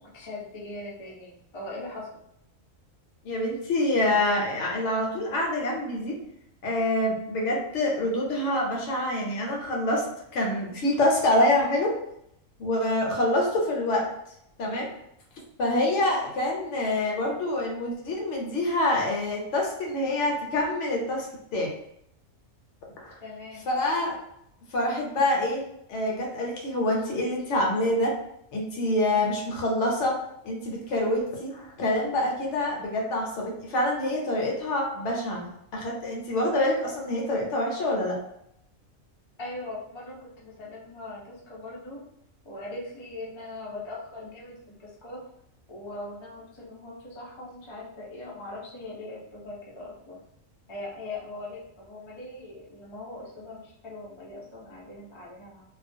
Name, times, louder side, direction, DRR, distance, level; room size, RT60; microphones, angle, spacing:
voice 1, 0.0-2.2 23.2-23.6 39.4-42.0 42.4-45.2 45.7-50.2 50.7-55.6, left 2 dB, 45° left, -5 dB, 0.3 m, -40 dB
voice 2, 3.2-6.2 6.6-10.0 10.3-11.9 12.6-14.1 14.6-14.9 15.6-21.3 21.5-21.7 23.0-23.2 23.7-24.2 24.7-28.2 28.5-30.2 30.4-35.5 35.7-38.2, left 1 dB, 70° left, -1 dB, 0.9 m, -26 dB
2.3 x 2.1 x 2.5 m, 0.77 s
omnidirectional pair, 1.4 m